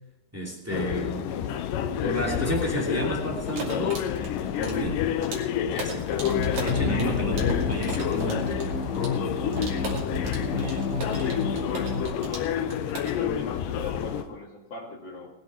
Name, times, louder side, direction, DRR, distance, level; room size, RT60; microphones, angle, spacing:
voice 1, 0.3-1.6 2.0-4.0 4.6-5.1 5.7-6.1 6.6-8.7, equal, 5° right, -2 dB, 1.7 m, -31 dB
sound 1, 0.7-14.2, left 9 dB, 75° left, 2.1 m, -29 dB
sound 2, 3.4-14.3, right 3 dB, 50° right, 3.8 m, -40 dB
sound 3, 6.2-12.0, left 4 dB, 55° left, 2.1 m, -31 dB
voice 2, 10.5-11.9 13.0-15.3, left 4 dB, 35° left, -6 dB, 2.4 m, -40 dB
20.0 x 9.5 x 4.6 m, 0.93 s
omnidirectional pair, 4.5 m